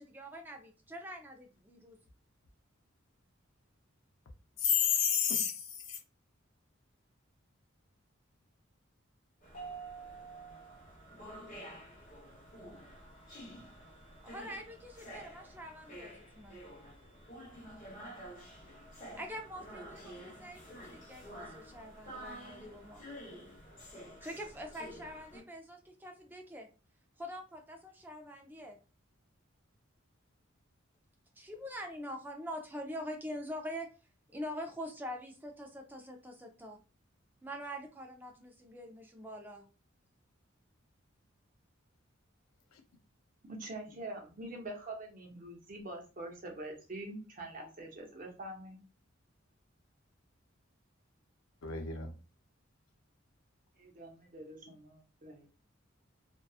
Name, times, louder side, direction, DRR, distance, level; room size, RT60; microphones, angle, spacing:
voice 1, 0.0-2.0 14.2-16.6 19.2-23.0 24.2-26.7 27.2-28.8 31.4-33.9 34.3-36.8 37.4-39.7, equal, 10° right, 0.3 m, -44 dB
voice 2, 4.6-6.0 51.6-52.1, left 8 dB, 85° left, 0.6 m, -30 dB
sound 1, 9.4-25.4, right 1 dB, 40° left, 0.9 m, -49 dB
voice 3, 43.4-48.8 53.8-55.5, right 2 dB, 40° right, 0.7 m, -45 dB
2.6 x 2.3 x 2.3 m
head